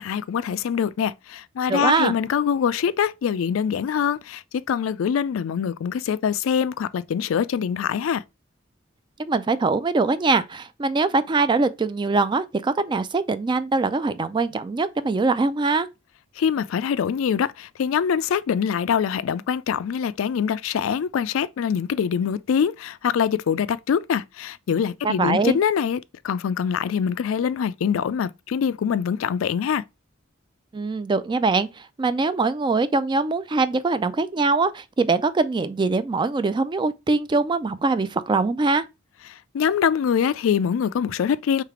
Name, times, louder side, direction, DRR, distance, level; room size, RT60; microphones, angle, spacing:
voice 1, 0.0-8.2 16.4-26.0 26.2-29.8 39.5-41.6, left 7 dB, 85° left, 0.3 m, -24 dB
voice 2, 1.7-2.2 9.3-15.9 25.0-25.6 30.7-38.8, right 3 dB, 25° right, 0.3 m, -22 dB
3.3 x 3.2 x 4.8 m
head